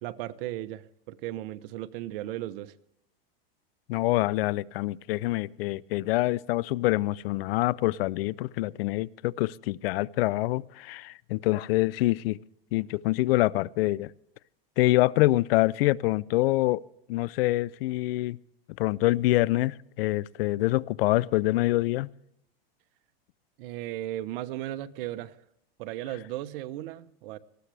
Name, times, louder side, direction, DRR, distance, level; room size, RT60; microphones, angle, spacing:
voice 1, 0.0-2.7 23.6-25.4 25.8-27.4, right 14 dB, 70° right, 11 dB, 1.1 m, -36 dB
voice 2, 3.9-12.4 12.7-14.1 14.8-16.8 17.1-18.4 18.8-22.1, left 18 dB, 75° left, 23 dB, 0.5 m, -25 dB
19.5 x 14.5 x 3.4 m, 0.77 s
supercardioid pair, 130°, 29 cm